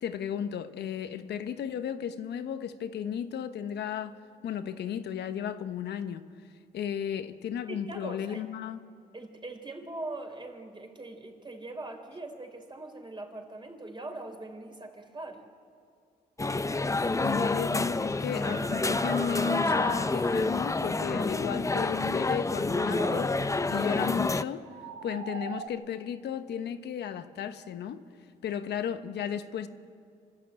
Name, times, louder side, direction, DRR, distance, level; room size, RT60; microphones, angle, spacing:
voice 1, 0.0-4.2 4.4-6.2 6.7-8.8 17.2-23.3 23.7-24.6 25.0-28.0 28.4-29.7, left 8 dB, 80° left, 1.1 m, -34 dB
voice 2, 7.7-8.4 9.1-15.4 28.4-28.6, right 2 dB, 30° right, 3.9 m, -41 dB
sound 1, 16.4-24.4, left 3 dB, 20° left, 0.6 m, -28 dB
sound 2, 18.3-20.5 22.4-23.6 24.5-25.7, right 6 dB, 75° right, 1.3 m, -41 dB
26.5 x 12.5 x 8.8 m
cardioid pair, 65°, 17 cm